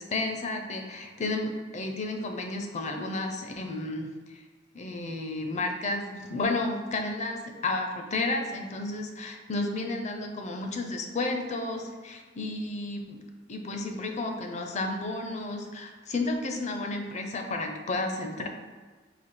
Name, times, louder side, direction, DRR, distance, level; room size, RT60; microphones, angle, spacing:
voice 1, 0.0-4.4 4.7-13.2 13.5-18.5, left 2 dB, 40° left, 4 dB, 0.5 m, -32 dB
4.1 x 2.7 x 4.6 m, 1.4 s
head